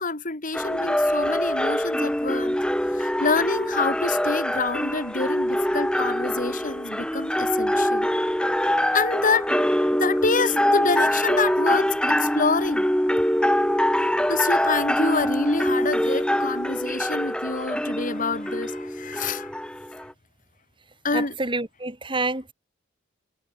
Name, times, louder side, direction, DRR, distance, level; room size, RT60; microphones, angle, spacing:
voice 1, 0.0-2.6 2.9-8.1 8.9-9.5 9.9-12.9 14.3-19.5 21.0-21.4, left 4 dB, 40° left, 2.7 m, -27 dB
sound 1, 0.5-20.1, equal, 5° left, 3.3 m, -24 dB
voice 2, 21.1-22.5, right 2 dB, 25° right, 5.9 m, -28 dB
head